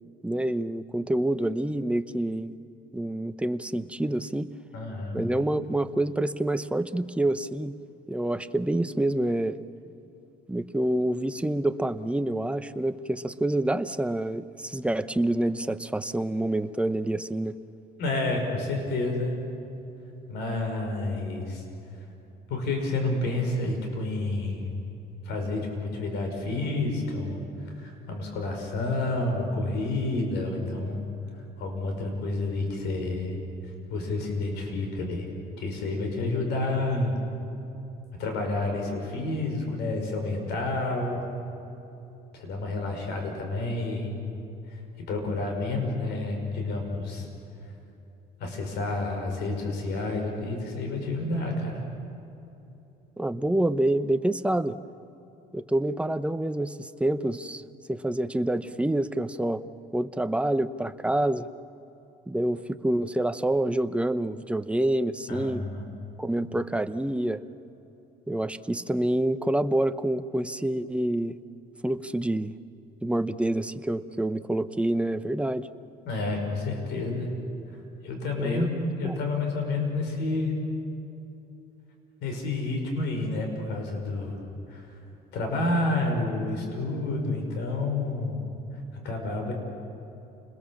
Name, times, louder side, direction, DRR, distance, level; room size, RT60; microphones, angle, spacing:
voice 1, 0.2-2.5 2.9-4.5 5.1-7.7 8.1-9.6 10.5-17.6 53.2-54.8 55.5-57.6 57.9-59.6 59.9-61.5 62.3-65.6 66.2-67.4 68.3-71.4 71.8-72.5 73.0-75.7 78.4-79.2, right 1 dB, 5° right, 11 dB, 0.8 m, -27 dB
voice 2, 4.7-5.2 18.0-19.3 20.3-21.6 22.5-24.6 25.2-31.0 31.6-33.3 33.9-35.3 35.6-37.2 38.2-41.2 42.3-44.1 44.7-44.8 45.1-47.3 48.4-51.8 65.3-65.9 76.0-77.3 78.0-78.7 79.0-80.5 82.2-84.4 84.7-84.9 85.3-88.4 89.0-89.5, left 2 dB, 80° left, 3 dB, 5.8 m, -29 dB
29.0 x 21.0 x 7.3 m, 3.0 s
cardioid pair, 110°, 17 cm